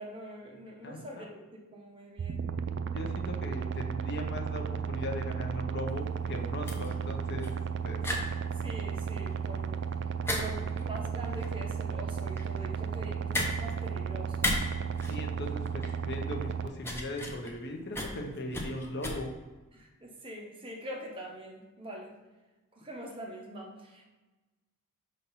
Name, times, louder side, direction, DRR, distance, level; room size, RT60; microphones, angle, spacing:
voice 1, 0.0-1.4 1.7-2.5 8.6-9.9 10.3-14.5 19.7-22.1 22.8-24.1, right 1 dB, 25° right, -1 dB, 1.1 m, -43 dB
voice 2, 0.8-1.2 2.9-7.5 7.8-8.0 15.1-19.3, left 1 dB, 50° left, 2 dB, 0.9 m, -38 dB
sound 1, 2.2-16.7, right 6 dB, 50° right, 0.4 m, -34 dB
sound 2, 5.9-19.1, left 1 dB, 10° left, 0.8 m, -37 dB
5.3 x 4.2 x 5.6 m, 1.2 s
head